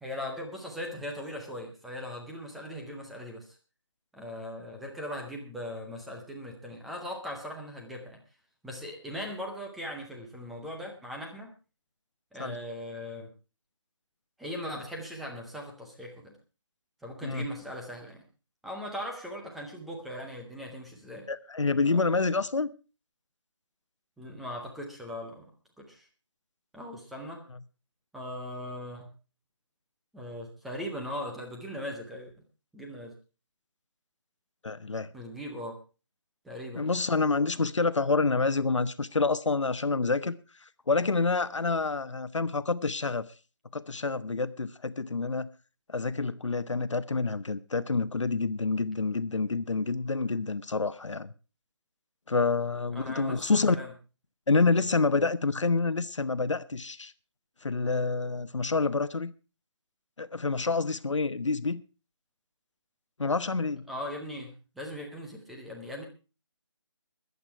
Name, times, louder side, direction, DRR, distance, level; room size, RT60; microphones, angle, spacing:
voice 1, 0.0-3.6 4.1-8.2 8.6-11.5 12.3-13.3 14.4-16.3 17.0-18.2 18.6-21.3 21.8-22.3 24.2-25.5 25.8-26.1 26.7-27.4 28.1-29.1 30.1-32.3 32.7-33.1 35.1-35.8 36.4-36.9 52.9-53.9 63.9-66.0, left 1 dB, ahead, 0.6 m, -39 dB
voice 2, 21.3-22.7 34.6-35.1 36.8-40.4 40.9-43.3 43.7-45.5 45.9-51.3 52.3-53.8 54.5-57.1 57.6-59.3 60.2-61.8 63.2-63.8, left 4 dB, 80° left, 1.0 m, -27 dB
20.5 x 8.3 x 4.5 m
figure-of-eight pair, 170°, 15 cm